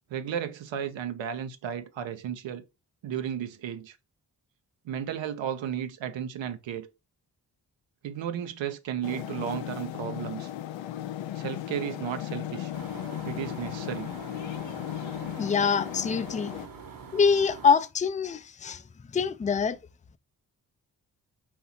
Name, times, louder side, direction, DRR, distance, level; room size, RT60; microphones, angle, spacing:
voice 1, 0.1-2.6 3.0-4.0 4.8-6.9 8.0-10.5 11.3-12.7 13.2-14.1, right 9 dB, 80° right, 0.7 m, -34 dB
sound 1, 9.0-16.7, left 12 dB, 80° left, 0.5 m, -36 dB
sound 2, 12.7-17.7, right 6 dB, 50° right, 1.0 m, -44 dB
voice 2, 15.4-16.6 17.1-18.8 19.1-19.8, left 6 dB, 20° left, 0.4 m, -24 dB
4.3 x 2.7 x 4.1 m
supercardioid pair, 45°, 45 cm